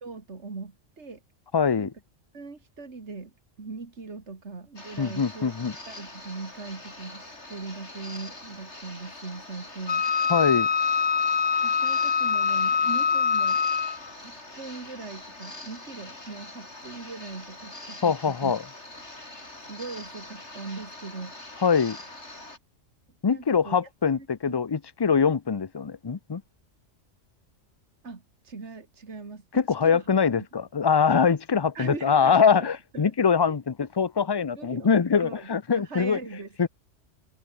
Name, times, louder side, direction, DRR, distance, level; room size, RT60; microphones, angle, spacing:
voice 1, 0.0-1.2 1.8-1.9 2.3-5.5 5.9-10.1 11.6-13.6 14.1-18.5 19.7-21.3 23.3-23.8 24.1-24.7 28.0-30.1 31.7-33.1 33.4-33.5 34.6-36.7, right 4 dB, 65° right, 2.7 m, -40 dB
voice 2, 1.5-1.9 5.0-5.7 10.3-10.7 18.0-18.6 21.6-22.0 23.2-26.4 29.5-36.2 36.6-36.7, left 6 dB, 30° left, 0.4 m, -23 dB
sound 1, 4.8-22.6, left 2 dB, 65° left, 6.0 m, -44 dB
Wind instrument woodwind instrument, 9.9-14.1, left 6 dB, 85° left, 1.9 m, -24 dB
open air
omnidirectional pair, 1.2 m